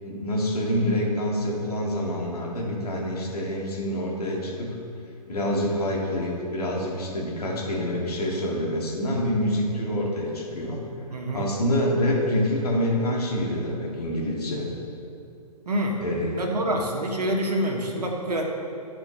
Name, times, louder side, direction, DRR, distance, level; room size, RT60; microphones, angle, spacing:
voice 1, 0.0-4.8 5.3-10.8 11.3-14.7 16.0-16.3, equal, 70° left, -2 dB, 1.9 m, -26 dB
voice 2, 11.1-11.5 15.7-16.0 16.3-18.4, right 1 dB, 80° right, 0 dB, 1.2 m, -26 dB
11.5 x 4.4 x 3.8 m, 2.5 s
figure-of-eight pair, 120°, 20 cm